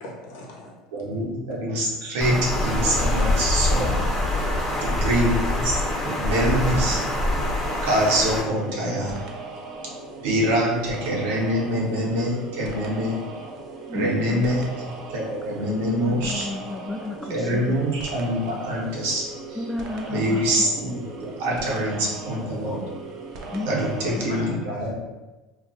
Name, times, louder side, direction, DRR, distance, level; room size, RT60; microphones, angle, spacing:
voice 1, 0.0-0.8 3.7-4.1 23.2-23.5 24.0-24.9, left 1 dB, 80° left, -2 dB, 0.8 m, -38 dB
voice 2, 0.9-3.9 4.8-5.7 6.0-7.0 7.8-9.2 9.8-9.9 10.2-13.1 13.9-16.5 17.3-19.7 20.1-22.8 23.7-25.1, equal, 85° right, -3 dB, 0.8 m, -25 dB
Water, 2.2-8.4, left 1 dB, 30° left, 0.9 m, -24 dB
sound 1, 7.6-24.4, right 3 dB, 60° right, 0.5 m, -38 dB
voice 3, 13.9-14.4 15.7-17.8 19.6-20.4 23.5-23.7, left 2 dB, 10° left, 1 dB, 0.3 m, -32 dB
2.3 x 2.2 x 3.9 m, 1.1 s
supercardioid pair, 100°, 0 cm